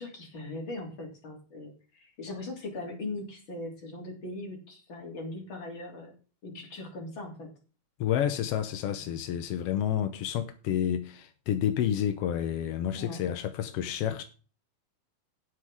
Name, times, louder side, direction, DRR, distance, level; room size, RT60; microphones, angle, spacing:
voice 1, 0.0-6.1 6.4-7.5 9.0-9.1 12.9-13.2, left 2 dB, 40° left, 3.6 m, -40 dB
voice 2, 8.0-14.2, left 10 dB, 70° left, 1.4 m, -29 dB
17.5 x 6.3 x 3.6 m
omnidirectional pair, 3.6 m